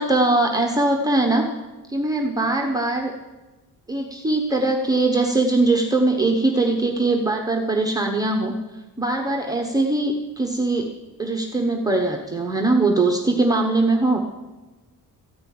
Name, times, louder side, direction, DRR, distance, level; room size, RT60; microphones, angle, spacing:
voice 1, 0.0-1.5 1.9-3.1 3.9-8.5 9.0-10.9 11.2-14.2, right 2 dB, 10° right, 1 dB, 1.0 m, -21 dB
14.5 x 5.5 x 9.2 m, 1.2 s
cardioid pair, 150°, 35 cm